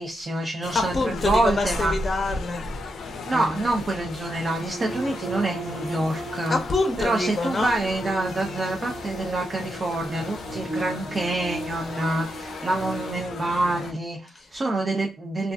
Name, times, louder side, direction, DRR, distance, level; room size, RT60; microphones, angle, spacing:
voice 1, 0.0-2.0 3.0-6.6 7.0-15.5, right 2 dB, 40° right, 0.4 m, -27 dB
sound 1, 0.6-13.9, left 3 dB, 70° left, 0.4 m, -36 dB
voice 2, 0.7-2.7 3.2-3.6 6.5-7.8 14.3-14.5, left 3 dB, 30° left, 0.6 m, -26 dB
sound 2, 4.5-13.1, right 2 dB, 80° right, 1.1 m, -37 dB
2.4 x 2.3 x 2.2 m
cardioid pair, 75°, 0 cm